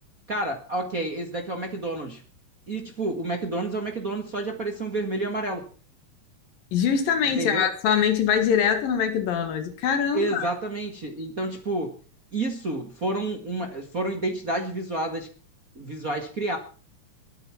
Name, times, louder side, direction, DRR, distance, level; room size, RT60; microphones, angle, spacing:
voice 1, 0.3-2.2 2.7-5.6 7.4-7.7 10.1-11.9 12.3-15.3 15.7-16.6, right 2 dB, 35° right, 4 dB, 1.5 m, -29 dB
voice 2, 6.7-10.5, left 7 dB, 75° left, 9 dB, 3.5 m, -23 dB
21.0 x 9.6 x 5.8 m, 0.40 s
omnidirectional pair, 4.1 m